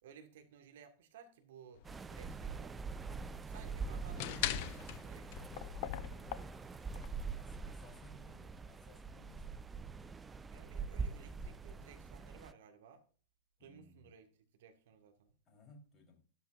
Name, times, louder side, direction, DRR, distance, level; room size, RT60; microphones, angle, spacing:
voice 1, 0.0-2.8 3.5-5.6 10.5-13.0 13.6-14.3 14.6-15.3, right 7 dB, 55° right, 1.8 m, -58 dB
sound 1, 1.8-7.1, left 12 dB, 50° left, 0.7 m, -42 dB
sound 2, 1.8-12.5, right 5 dB, 15° right, 0.5 m, -44 dB
voice 2, 5.9-6.6 7.1-9.8 13.6-14.1 15.5-16.2, left 3 dB, 25° left, 4.0 m, -61 dB
12.5 x 11.5 x 2.6 m
figure-of-eight pair, 90°, 0 cm